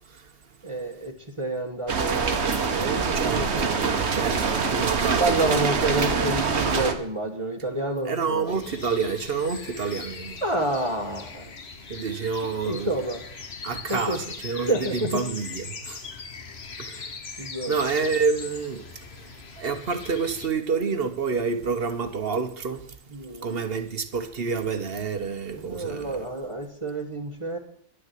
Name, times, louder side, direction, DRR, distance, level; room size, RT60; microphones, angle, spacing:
voice 1, 0.6-3.7 5.2-8.6 10.4-11.5 12.6-13.2 13.9-14.2 14.7-15.2 17.4-17.7 23.1-23.6 25.5-27.6, right 2 dB, 30° right, 1.3 m, -29 dB
sound 1, 1.9-6.9, right 5 dB, 75° right, 1.5 m, -25 dB
voice 2, 3.1-5.7 8.1-10.4 11.9-12.9 13.6-16.0 16.8-17.0 17.7-19.3 19.6-22.9 23.4-26.2, right 5 dB, 60° right, 1.3 m, -28 dB
sound 2, 8.5-20.5, left 5 dB, 70° left, 1.5 m, -40 dB
11.0 x 6.6 x 9.1 m
omnidirectional pair, 1.1 m